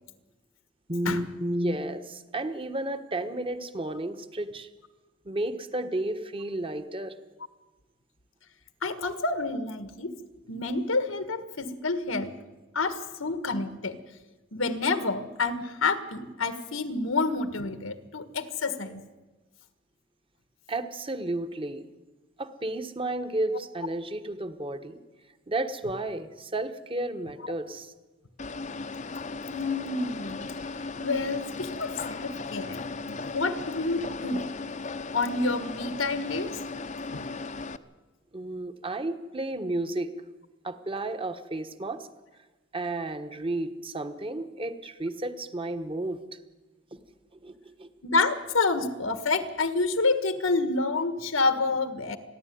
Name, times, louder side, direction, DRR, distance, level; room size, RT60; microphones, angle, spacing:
voice 1, 0.9-4.7 5.2-7.1 20.7-21.9 22.4-25.0 25.5-27.9 38.3-40.1 40.6-42.1 42.7-46.2 47.4-47.9, right 1 dB, 25° right, 9 dB, 1.3 m, -32 dB
voice 2, 8.8-10.2 10.5-12.4 12.7-14.0 14.5-19.0 29.5-30.5 31.0-32.8 33.0-34.5 35.1-36.6 37.1-37.2 48.0-52.2, left 3 dB, 85° left, 11 dB, 1.7 m, -28 dB
sound 1, 28.4-37.8, left 3 dB, 40° left, 0.8 m, -36 dB
28.0 x 11.0 x 9.5 m, 1.2 s
head